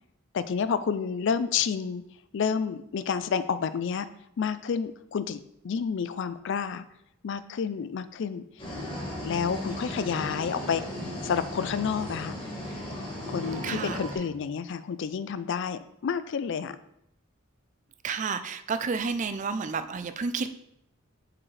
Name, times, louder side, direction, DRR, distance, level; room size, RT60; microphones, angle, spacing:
voice 1, 0.3-2.0 2.3-4.1 4.4-6.8 7.2-8.4 9.2-12.3 13.3-16.8, left 6 dB, 60° left, 13 dB, 0.4 m, -30 dB
sound 1, 8.6-14.2, left 1 dB, 25° left, 1.8 m, -36 dB
voice 2, 9.7-10.1 13.6-14.0 18.0-20.5, right 5 dB, 35° right, 10 dB, 0.4 m, -31 dB
7.2 x 4.8 x 3.3 m, 0.79 s
head